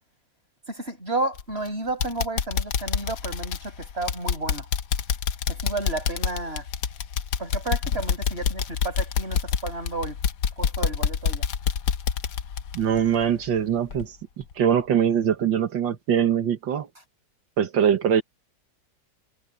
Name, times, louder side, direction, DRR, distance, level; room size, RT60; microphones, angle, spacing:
voice 1, 0.7-4.7 5.5-6.7 7.4-10.2 10.6-11.4, right 2 dB, 30° right, 7.5 m, -32 dB
sound 1, 1.3-1.7 2.0-13.6 13.9-14.0 14.5-14.6, left 7 dB, 65° left, 1.6 m, -27 dB
voice 2, 12.7-16.9 17.6-18.2, right 9 dB, 85° right, 2.0 m, -23 dB
omnidirectional pair, 2.0 m